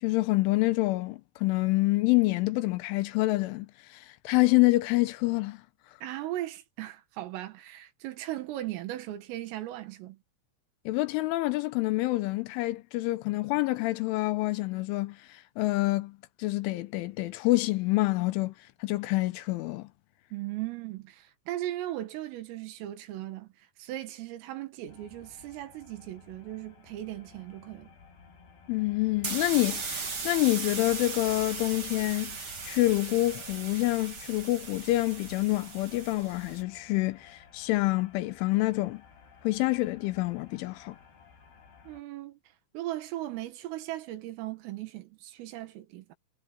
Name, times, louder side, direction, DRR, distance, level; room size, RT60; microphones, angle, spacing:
voice 1, 0.0-5.6 10.9-18.5 18.8-19.9 28.7-39.0 39.4-41.0, left 19 dB, 80° left, 3.1 m, -27 dB
voice 2, 6.0-10.2 20.3-27.9 41.9-42.4 42.7-46.2, right 14 dB, 80° right, 4.4 m, -38 dB
sound 1, 24.9-42.0, left 5 dB, 50° left, 8.8 m, -55 dB
sound 2, 29.2-36.6, right 4 dB, 30° right, 3.2 m, -38 dB
omnidirectional pair, 5.9 m